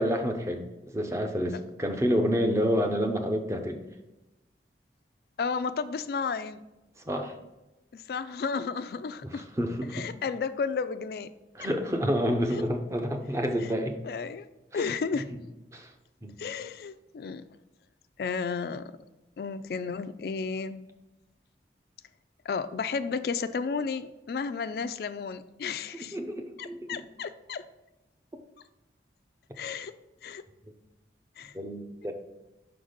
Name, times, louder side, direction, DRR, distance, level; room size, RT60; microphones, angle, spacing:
voice 1, 0.0-3.8 7.1-7.3 9.2-10.1 11.5-14.0 14.7-14.8 15.7-15.9 16.2-16.3 26.1-27.0 31.5-32.1, equal, 15° right, 5 dB, 0.6 m, -29 dB
voice 2, 5.4-6.6 7.9-9.5 9.9-11.3 12.5-12.6 14.0-14.5 14.7-15.3 16.4-17.5 18.2-18.9 19.4-20.9 22.5-26.2 26.6-27.6 29.6-29.9 30.2-30.4 31.4-31.5, left 5 dB, 60° left, 13 dB, 0.3 m, -33 dB
5.9 x 4.0 x 5.0 m, 1.0 s
head